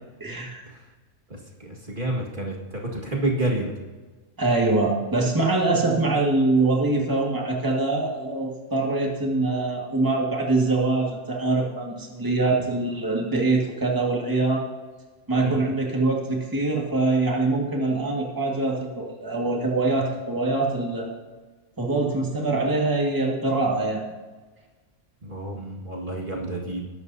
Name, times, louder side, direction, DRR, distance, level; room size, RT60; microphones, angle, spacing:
voice 1, 0.2-0.6 4.4-14.7 15.3-21.1 21.8-24.0, right 2 dB, 15° right, -1 dB, 1.8 m, -24 dB
voice 2, 1.3-3.7 15.4-15.6 25.2-26.9, right 1 dB, 40° right, -1 dB, 1.9 m, -29 dB
21.5 x 11.5 x 2.7 m, 1.3 s
omnidirectional pair, 1.3 m